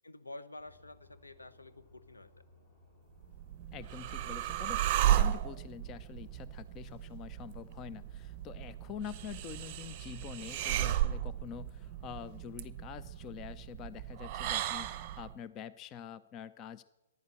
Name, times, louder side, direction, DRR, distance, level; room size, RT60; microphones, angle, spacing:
voice 1, 0.0-2.3, left 2 dB, 75° left, 10 dB, 1.1 m, -49 dB
sound 1, 0.6-12.5, left 2 dB, 40° left, 6.7 m, -62 dB
sound 2, 3.2-15.3, right 12 dB, 30° right, 0.7 m, -34 dB
voice 2, 3.7-16.8, left 9 dB, 25° left, 14 dB, 0.4 m, -46 dB
14.5 x 11.0 x 7.6 m, 1.0 s
figure-of-eight pair, 120°, 0 cm